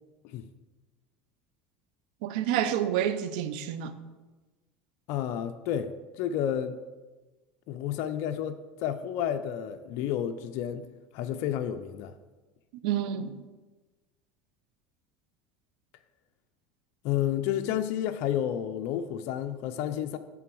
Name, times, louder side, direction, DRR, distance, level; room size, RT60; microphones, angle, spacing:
voice 1, 2.2-3.9 12.8-13.4, right 10 dB, 80° right, 0.6 m, -28 dB
voice 2, 5.1-6.8 7.7-10.9 11.1-12.1 17.0-20.2, left 10 dB, 65° left, 0.5 m, -31 dB
9.2 x 3.8 x 6.1 m
supercardioid pair, 110°, 4 cm